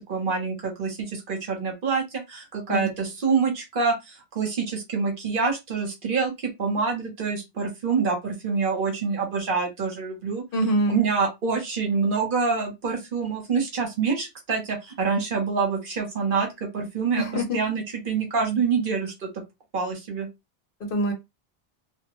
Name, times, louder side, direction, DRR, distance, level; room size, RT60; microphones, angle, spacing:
voice 1, 0.0-10.4 10.9-19.3 19.7-20.3, right 5 dB, 60° right, 1.0 m, -26 dB
voice 2, 10.5-11.0 17.2-17.6 20.8-21.1, right 1 dB, 65° left, 0.9 m, -24 dB
2.2 x 2.1 x 2.9 m
omnidirectional pair, 1.0 m